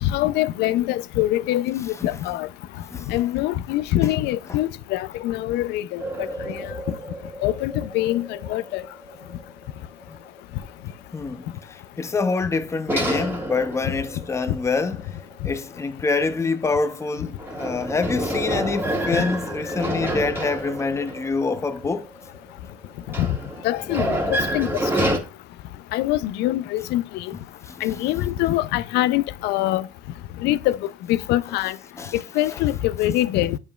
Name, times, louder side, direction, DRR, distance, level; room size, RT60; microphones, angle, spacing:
voice 1, 0.0-2.5 3.1-6.7 7.4-8.8 19.1-19.2 23.2-23.3 23.6-25.1 25.9-27.3 27.8-29.9 30.4-31.8 32.1-33.6, left 15 dB, 90° left, 0.4 m, -24 dB
sound 1, 6.0-9.5 10.0-10.1 12.9-15.2 17.4-22.2 23.0-25.2, right 1 dB, 15° right, 1.5 m, -28 dB
voice 2, 11.1-15.1 15.4-22.1 27.6-28.3 31.9-32.1 32.4-32.6, left 4 dB, 15° left, 0.6 m, -26 dB
8.9 x 5.1 x 2.2 m
cardioid pair, 110°, 17 cm